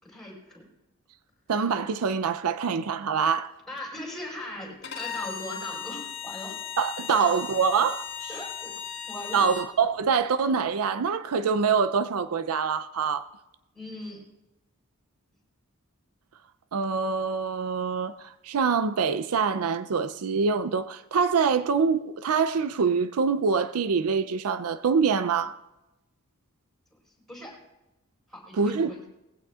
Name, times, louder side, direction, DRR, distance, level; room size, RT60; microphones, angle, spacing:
voice 1, 0.0-0.7 3.7-6.6 7.1-7.3 8.3-8.7 9.0-9.4 13.7-14.2 26.9-27.0 27.3-27.5 28.3-29.1, left 1 dB, ahead, 4.9 m, -39 dB
voice 2, 1.5-3.5 6.8-8.3 9.3-13.3 16.7-25.5 28.6-28.9, right 5 dB, 75° right, 0.5 m, -25 dB
Bowed string instrument, 4.8-9.7, left 7 dB, 55° left, 1.9 m, -37 dB
20.0 x 15.5 x 2.4 m
head